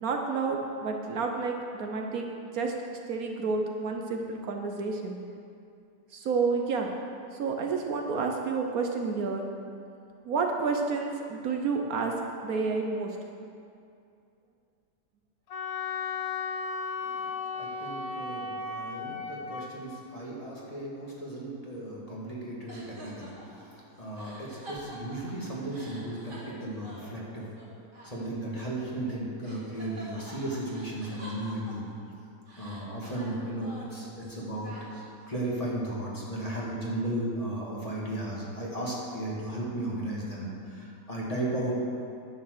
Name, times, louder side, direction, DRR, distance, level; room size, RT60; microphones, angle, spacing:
voice 1, 0.0-2.3 2.5-2.7 3.1-5.2 6.1-6.9 7.3-9.5 10.2-12.1 12.4-13.2, right 4 dB, 65° right, 2 dB, 1.2 m, -30 dB
Wind instrument woodwind instrument, 15.5-19.7, left 4 dB, 70° left, 1.3 m, -35 dB
voice 2, 17.5-27.5 28.0-31.9 32.6-34.7 35.3-41.8, right 1 dB, 25° left, -5 dB, 1.8 m, -35 dB
sound 1, 22.7-29.1 29.4-32.1 32.5-35.3, right 1 dB, 30° right, 2.1 m, -47 dB
10.0 x 7.1 x 6.5 m, 2.5 s
omnidirectional pair, 1.7 m